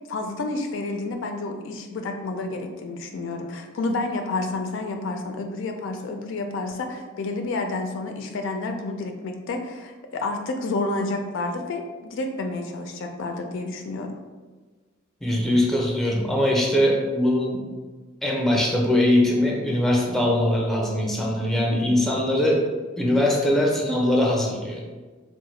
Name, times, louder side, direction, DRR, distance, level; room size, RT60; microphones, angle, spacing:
voice 1, 0.0-14.1, left 2 dB, 70° left, 4 dB, 0.3 m, -30 dB
voice 2, 15.2-17.7 18.2-22.7 23.0-24.8, left 1 dB, ahead, -2 dB, 0.5 m, -21 dB
3.6 x 2.1 x 3.1 m, 1.4 s
head